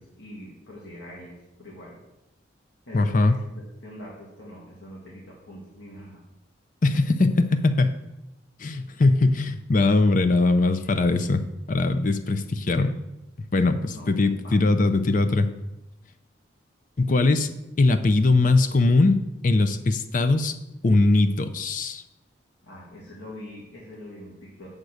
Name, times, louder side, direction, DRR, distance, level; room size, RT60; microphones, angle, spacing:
voice 1, 0.0-2.0 2.9-6.2 13.9-14.1 14.4-14.6 22.6-24.7, left 1 dB, 85° left, -5 dB, 1.8 m, -43 dB
voice 2, 2.9-3.4 6.8-8.0 8.6-11.4 11.7-12.9 13.5-15.5 17.0-17.5 17.8-19.2 19.4-20.5 20.8-22.0, left 2 dB, 45° left, 9 dB, 0.5 m, -21 dB
7.9 x 3.6 x 6.4 m, 0.93 s
head